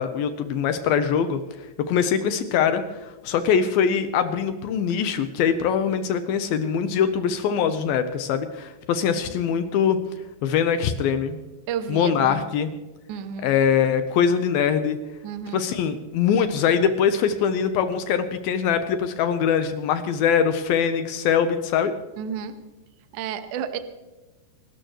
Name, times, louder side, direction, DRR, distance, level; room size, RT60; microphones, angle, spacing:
voice 1, 0.0-1.4 1.9-10.0 10.4-11.4 11.9-12.7 13.4-15.0 15.5-21.9, left 7 dB, 80° left, 9 dB, 2.2 m, -22 dB
voice 2, 11.7-12.4 13.1-13.5 15.2-15.6 22.2-22.6 23.1-23.8, right 8 dB, 70° right, 9 dB, 1.9 m, -31 dB
26.5 x 13.0 x 3.1 m, 1.1 s
omnidirectional pair, 5.1 m